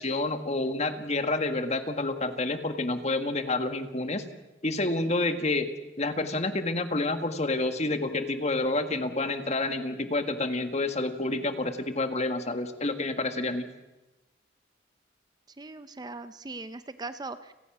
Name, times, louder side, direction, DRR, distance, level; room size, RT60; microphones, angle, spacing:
voice 1, 0.0-4.3 4.6-5.7 6.0-13.7, left 2 dB, 40° left, 8 dB, 1.7 m, -29 dB
voice 2, 15.6-17.5, right 3 dB, 25° right, 11 dB, 0.7 m, -39 dB
29.5 x 18.5 x 6.1 m, 1.1 s
head